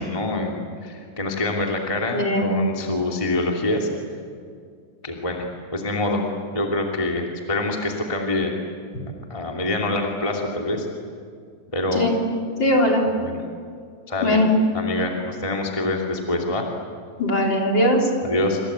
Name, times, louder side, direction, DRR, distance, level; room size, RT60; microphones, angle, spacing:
voice 1, 0.0-3.9 5.0-5.5 5.7-6.2 6.5-8.5 9.3-10.9 11.7-12.1 13.2-13.4 14.1-14.4 14.7-16.7 18.2-18.6, left 2 dB, 10° left, 0 dB, 1.9 m, -25 dB
voice 2, 2.1-2.5 11.9-12.2 12.6-13.0 14.2-14.5 17.2-18.1, left 1 dB, 30° left, 0 dB, 4.1 m, -20 dB
27.5 x 26.5 x 8.2 m, 2.2 s
omnidirectional pair, 4.5 m